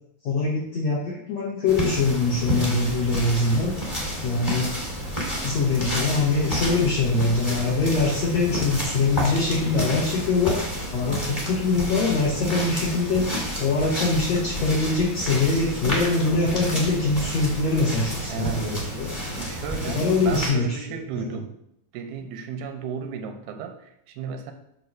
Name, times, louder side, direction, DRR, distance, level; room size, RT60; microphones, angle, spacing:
voice 1, 0.2-3.7 4.2-4.8 5.3-10.6 10.9-19.3 19.9-21.4, left 3 dB, 70° left, -4 dB, 1.7 m, -23 dB
sound 1, 1.7-20.5, equal, 20° left, 0.8 m, -30 dB
voice 2, 18.3-18.7 19.3-21.5 21.9-24.5, right 6 dB, 80° right, 5 dB, 2.6 m, -34 dB
7.9 x 2.8 x 6.0 m, 0.76 s
omnidirectional pair, 4.5 m